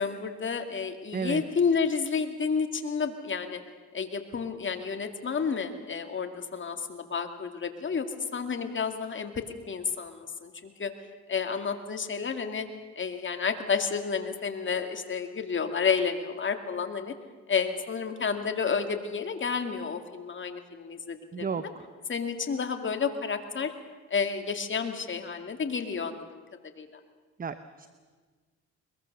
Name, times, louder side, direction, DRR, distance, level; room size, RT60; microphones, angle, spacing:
voice 1, 0.0-3.6 3.9-10.9 11.3-12.7 13.0-17.1 17.5-21.6 22.1-23.7 24.1-26.4 26.8-26.9, left 5 dB, 40° left, 6 dB, 2.4 m, -30 dB
voice 2, 1.1-1.4 21.3-21.9 27.4-27.9, right 5 dB, 30° right, 12 dB, 0.9 m, -33 dB
22.0 x 22.0 x 6.8 m, 1.4 s
cardioid pair, 90°, 30 cm